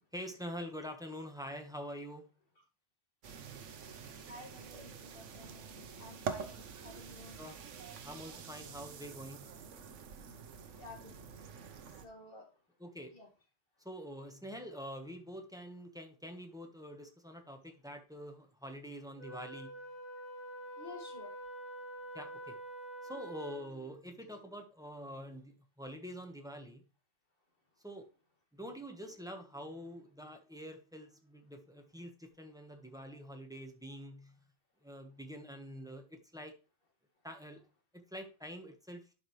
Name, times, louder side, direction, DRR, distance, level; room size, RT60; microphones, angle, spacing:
voice 1, 0.1-2.3 7.4-7.6 8.0-9.5 12.8-13.2 13.8-19.8 22.1-22.6 23.0-26.8 27.8-28.1 28.5-34.4 34.8-36.5 37.2-37.7 37.9-39.1, equal, 5° right, 4 dB, 1.1 m, -46 dB
sound 1, 3.2-12.1, right 6 dB, 80° right, 1.2 m, -46 dB
voice 2, 4.3-7.4 10.8-11.2 12.0-12.5 13.1-13.3 20.8-21.3, left 2 dB, 50° left, 1 dB, 2.3 m, -52 dB
Wind instrument woodwind instrument, 19.2-23.8, right 1 dB, 35° right, 3.1 m, -46 dB
11.0 x 5.1 x 3.1 m, 0.33 s
omnidirectional pair, 1.2 m